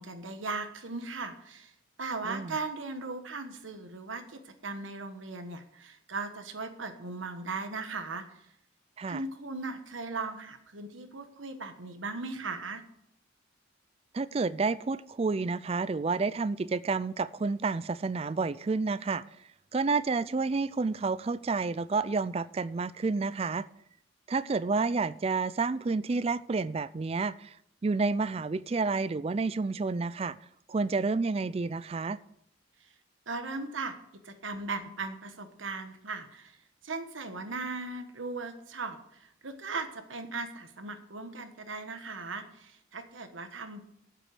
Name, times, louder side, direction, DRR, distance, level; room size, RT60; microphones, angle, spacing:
voice 1, 0.0-1.7 2.0-8.4 9.1-12.8 33.3-33.9 34.2-36.6 36.8-43.8, right 3 dB, 90° right, 1.3 m, -38 dB
voice 2, 2.2-2.6 9.0-9.2 14.1-19.2 19.7-23.6 24.3-27.5 27.8-30.4 30.7-32.2, right 4 dB, 30° right, 0.3 m, -30 dB
8.1 x 7.5 x 8.3 m
head